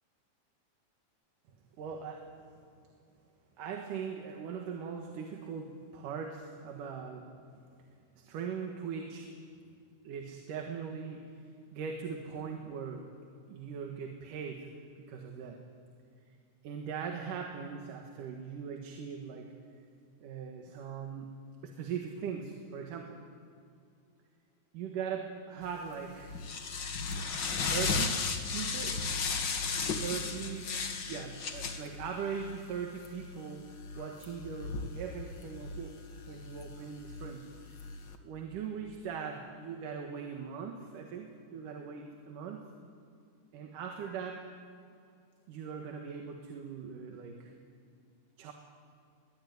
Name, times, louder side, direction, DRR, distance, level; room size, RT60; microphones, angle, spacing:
voice 1, 1.8-2.3 3.6-7.3 8.2-9.3 10.0-13.1 13.5-14.7 15.0-15.6 16.6-19.5 20.2-23.2 24.7-26.3 27.6-28.2 28.5-29.0 29.9-30.7 31.1-36.0 36.3-37.5 38.2-42.6 43.5-44.4 45.5-47.5 48.4-48.5, right 6 dB, 90° right, 3 dB, 3.2 m, -40 dB
sound 1, 25.7-38.2, left 4 dB, 45° left, 1.8 m, -36 dB
23.5 x 22.0 x 9.4 m, 2.5 s
omnidirectional pair, 3.6 m